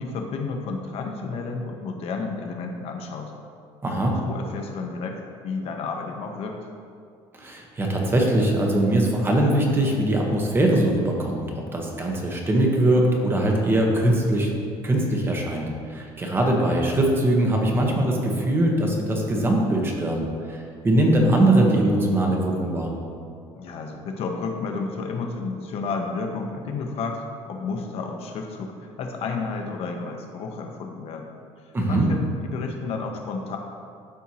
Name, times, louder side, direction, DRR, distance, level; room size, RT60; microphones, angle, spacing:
voice 1, 0.0-3.3 4.2-6.7 23.6-31.3 31.6-33.6, left 4 dB, 55° left, 3 dB, 0.9 m, -31 dB
voice 2, 3.8-4.2 7.3-11.4 11.7-14.5 14.8-22.9 31.7-32.1, right 1 dB, 20° right, 0 dB, 1.1 m, -21 dB
12.5 x 4.6 x 2.9 m, 2.3 s
cardioid pair, 145°, 12 cm